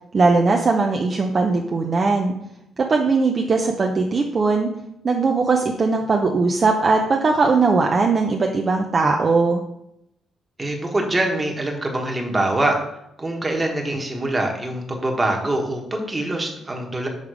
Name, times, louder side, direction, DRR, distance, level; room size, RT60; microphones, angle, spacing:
voice 1, 0.1-2.3 2.8-4.7 5.0-9.6, right 4 dB, 40° right, 2 dB, 0.6 m, -19 dB
voice 2, 10.6-12.8 13.2-17.1, right 1 dB, 20° right, 1 dB, 1.3 m, -24 dB
6.5 x 3.5 x 4.9 m, 0.81 s
cardioid pair, 90°, 0 cm